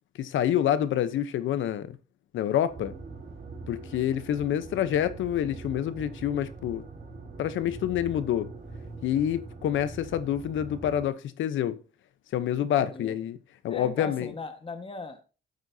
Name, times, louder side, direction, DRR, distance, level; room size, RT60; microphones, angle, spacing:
voice 1, 0.2-2.0 2.3-2.9 3.7-6.8 7.4-8.5 9.0-11.8 12.3-13.4 13.6-14.3, left 10 dB, 75° left, 0.9 m, -27 dB
sound 1, 2.7-11.1, right 3 dB, 40° right, 4.3 m, -43 dB
voice 2, 12.6-13.2 13.7-15.2, left 3 dB, 25° left, 1.5 m, -39 dB
12.5 x 7.7 x 2.8 m
cardioid pair, 90°, 20 cm